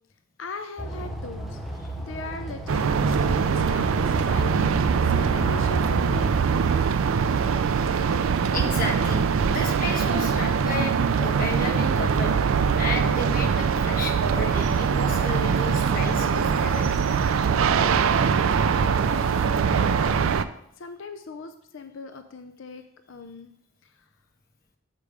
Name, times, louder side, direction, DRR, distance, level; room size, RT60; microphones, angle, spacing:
voice 1, 0.4-1.6 2.0-6.6 19.0-20.4 20.8-23.5 23.8-23.9, left 3 dB, 65° left, 8 dB, 0.5 m, -40 dB
sound 1, 0.8-6.4, equal, ahead, 0.7 m, -34 dB
sound 2, 2.7-20.4, right 6 dB, 75° right, 0.4 m, -22 dB
voice 2, 8.4-12.3 12.8-16.9, left 2 dB, 40° left, 2 dB, 1.1 m, -33 dB
6.7 x 5.2 x 4.8 m, 0.74 s
head